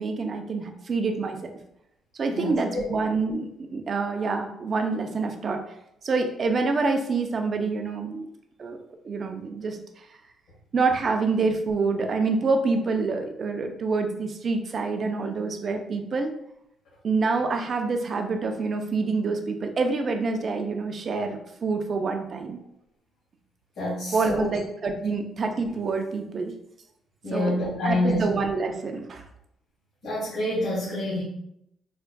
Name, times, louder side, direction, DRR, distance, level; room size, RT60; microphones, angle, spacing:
voice 1, 0.0-1.4 2.1-5.6 6.0-8.3 8.6-8.8 9.0-10.1 10.7-16.3 17.0-22.6 24.1-26.5 27.3-27.6 27.8-29.2, right 4 dB, 45° right, 5 dB, 0.5 m, -27 dB
voice 2, 2.3-2.9 23.8-24.5 27.2-28.2 30.0-31.2, left 1 dB, 80° left, -9 dB, 1.3 m, -27 dB
4.4 x 2.4 x 2.2 m, 0.77 s
cardioid pair, 90°, 0 cm